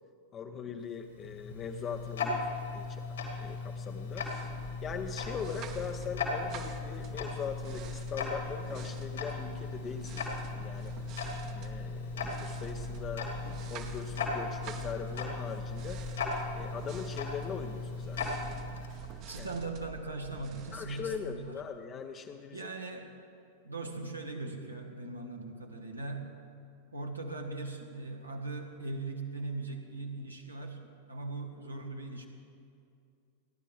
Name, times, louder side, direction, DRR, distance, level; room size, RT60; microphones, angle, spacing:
voice 1, 0.3-2.5 2.7-3.0 3.3-4.3 4.8-10.9 11.5-13.3 13.7-16.0 16.5-18.4 19.4-19.5 20.7-22.7, left 6 dB, 25° left, 4 dB, 0.7 m, -41 dB
Tick-tock, 0.9-19.2, left 4 dB, 65° left, 2.3 m, -38 dB
sound 1, 3.9-21.8, right 4 dB, 40° right, 1.1 m, -46 dB
voice 2, 19.3-21.6 22.5-23.1 23.6-26.3 26.9-32.3, right 3 dB, 85° right, 2 dB, 1.5 m, -39 dB
29.5 x 11.0 x 3.4 m, 2.4 s
figure-of-eight pair, 90°, 0 cm